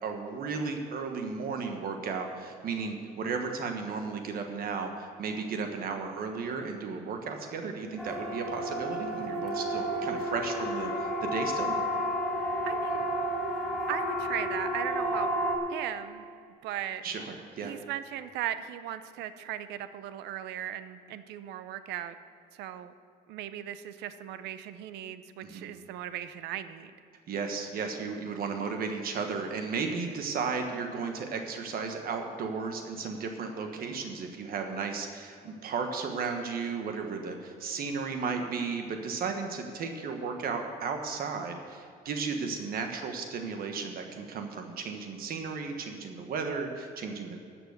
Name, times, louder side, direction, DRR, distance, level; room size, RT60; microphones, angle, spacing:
voice 1, 0.0-10.9 11.2-11.7 17.0-17.7 25.4-25.7 27.3-47.4, right 5 dB, 60° right, 4 dB, 1.3 m, -34 dB
Siren, 8.0-15.6, equal, ahead, 2.2 m, -31 dB
voice 2, 12.6-13.1 13.9-15.3 15.7-16.2 16.6-17.1 17.6-22.1 22.6-22.9 23.3-26.9, right 11 dB, 85° right, 12 dB, 0.7 m, -37 dB
13.0 x 6.1 x 8.1 m, 2.4 s
cardioid pair, 110°, 17 cm